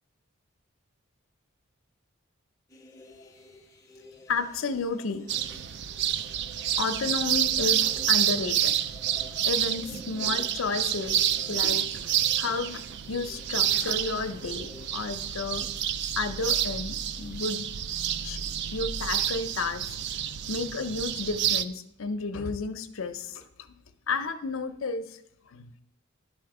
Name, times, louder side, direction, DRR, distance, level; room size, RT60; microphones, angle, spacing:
sound 1, 2.7-15.8, left 1 dB, 15° left, 0.6 m, -51 dB
voice 1, 4.3-5.3 6.8-8.8 9.4-11.9 12.1-15.7 16.2-17.7 18.2-19.9 20.5-23.5 24.1-25.2 25.5-25.7, left 4 dB, 70° left, 10 dB, 0.6 m, -32 dB
sound 2, 5.3-21.6, right 10 dB, 50° right, 0.3 m, -29 dB
10.5 x 4.3 x 4.8 m, 0.78 s
head